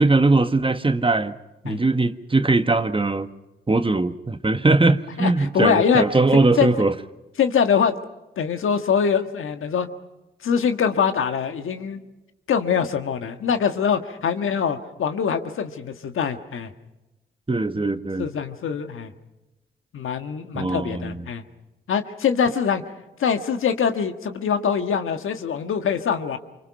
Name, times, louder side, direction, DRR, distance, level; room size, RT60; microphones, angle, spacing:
voice 1, 0.0-1.4 1.6-3.3 3.7-6.9 17.5-18.3 20.5-21.2, right 3 dB, 25° right, 9 dB, 1.5 m, -20 dB
voice 2, 5.2-6.0 6.6-6.7 7.4-7.9 8.4-9.9 10.4-12.1 12.5-16.7 18.2-19.1 19.9-21.4 21.9-22.8 23.2-26.4, left 7 dB, 75° left, 7 dB, 1.6 m, -23 dB
25.5 x 24.5 x 5.8 m, 1.0 s
supercardioid pair, 50°, 21 cm